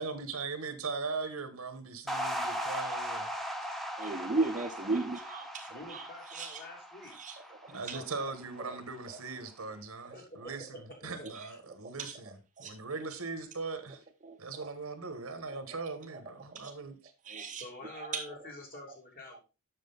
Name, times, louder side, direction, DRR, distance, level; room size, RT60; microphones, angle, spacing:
voice 1, 0.0-3.3 7.7-12.3 12.6-14.0 14.4-16.9, right 4 dB, 75° right, 1.4 m, -39 dB
sound 1, 2.1-8.6, equal, ahead, 0.9 m, -38 dB
voice 2, 4.0-6.6 7.1-7.6 7.9-8.0 8.6-8.8 10.1-10.2 11.2-11.5 12.0-12.8 14.2-14.7 15.7-15.8 16.5-16.7 17.2-18.5 18.9-19.0, right 3 dB, 35° right, 0.8 m, -37 dB
voice 3, 5.7-7.1 7.7-8.3 10.1-11.3 16.2-16.4 17.5-19.4, left 1 dB, 45° left, 2.9 m, -48 dB
7.6 x 6.3 x 3.9 m
head